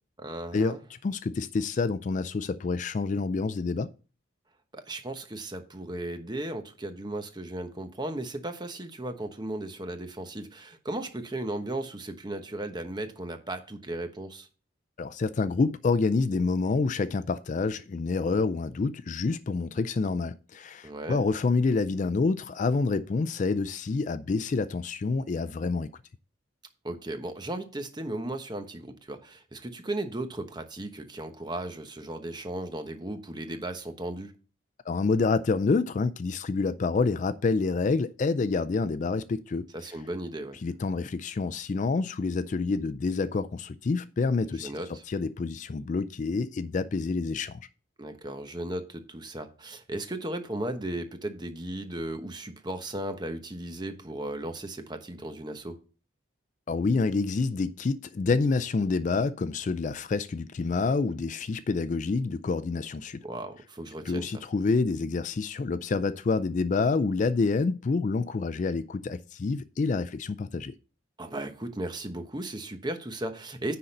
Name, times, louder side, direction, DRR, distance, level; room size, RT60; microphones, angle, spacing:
voice 1, 0.2-0.8 4.7-14.5 20.8-21.2 26.8-34.3 39.7-40.6 44.6-45.0 48.0-55.8 63.2-64.4 71.2-73.8, right 1 dB, 20° right, 1.0 m, -36 dB
voice 2, 1.0-3.9 15.0-25.9 34.9-39.7 40.6-44.7 45.1-47.6 56.7-63.2 64.1-70.7, left 4 dB, 40° left, 0.3 m, -27 dB
10.0 x 3.9 x 6.5 m
head